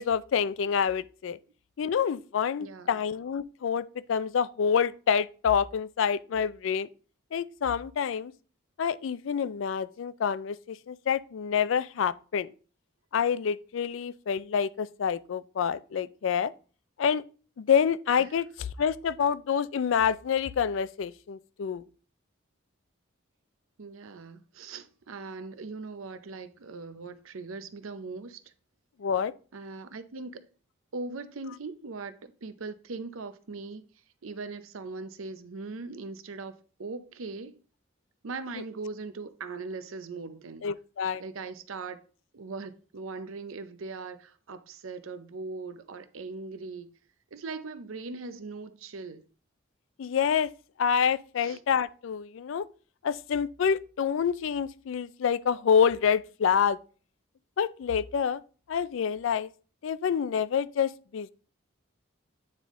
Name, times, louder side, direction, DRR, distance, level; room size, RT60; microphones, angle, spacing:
voice 1, 0.0-1.4 1.8-6.9 7.3-8.3 8.8-12.5 13.1-16.5 17.0-17.2 17.6-18.4 18.8-21.8 29.0-29.3 40.6-41.2 50.0-50.5 50.8-52.7 53.0-56.8 57.6-58.4 58.7-59.5 59.8-61.3, left 7 dB, 75° left, 0.4 m, -27 dB
voice 2, 2.6-3.0 23.8-28.5 29.5-30.5 30.9-33.8 34.2-36.5 36.8-37.6 38.2-40.7 41.2-42.0 42.3-46.9 47.3-49.3 51.4-51.6, right 3 dB, 85° right, 0.6 m, -40 dB
8.9 x 3.6 x 3.6 m
head